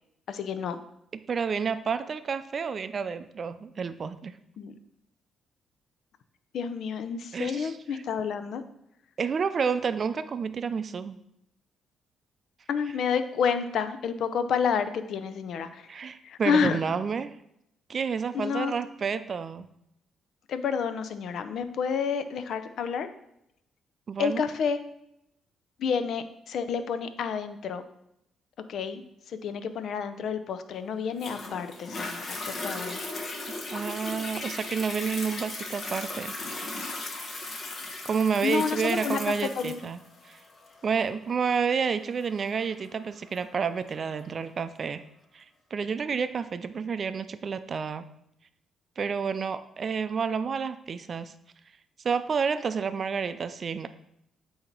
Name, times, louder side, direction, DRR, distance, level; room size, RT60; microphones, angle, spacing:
voice 1, 0.3-0.8 4.6-4.7 6.5-8.6 12.7-15.9 16.2-16.8 18.3-18.7 20.5-23.1 24.2-24.8 25.8-27.8 28.7-33.0 38.4-39.8, left 6 dB, 70° left, 11 dB, 0.6 m, -29 dB
voice 2, 1.1-4.4 7.3-8.0 9.2-11.2 15.9-17.3 17.9-19.7 24.1-24.4 33.5-36.3 36.6-36.9 38.0-40.0 40.2-40.4 40.8-45.0 45.3-45.4 45.7-48.1 49.0-51.3 52.0-53.9, right 6 dB, 50° right, 12 dB, 0.5 m, -30 dB
Toilet flush, 31.2-44.2 44.8-44.9, left 2 dB, 50° left, 1.2 m, -37 dB
8.4 x 2.8 x 4.5 m, 0.80 s
supercardioid pair, 55°, 0 cm